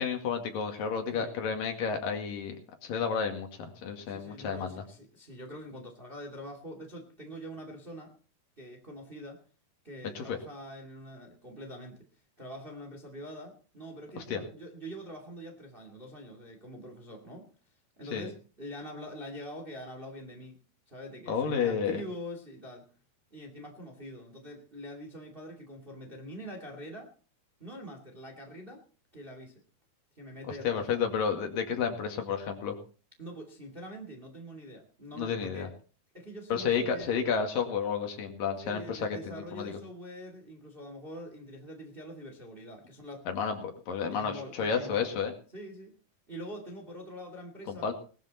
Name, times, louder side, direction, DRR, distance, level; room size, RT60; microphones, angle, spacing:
voice 1, 0.0-2.6 2.8-4.9 10.2-10.4 14.2-14.4 18.1-18.3 21.3-22.0 30.6-32.8 35.2-35.7 36.5-39.8 43.3-45.3 47.7-47.9, left 6 dB, 65° left, 4 dB, 3.7 m, -31 dB
voice 2, 4.1-8.1 8.6-9.4 9.8-12.1 12.4-17.5 18.0-20.6 20.9-22.9 23.3-27.1 27.6-28.8 29.1-29.6 30.2-31.0 33.2-35.7 36.1-37.4 38.6-43.2 44.1-45.1 45.5-46.0 46.3-47.9, equal, 15° right, 4 dB, 2.1 m, -44 dB
19.5 x 12.5 x 4.2 m, 0.39 s
omnidirectional pair, 4.3 m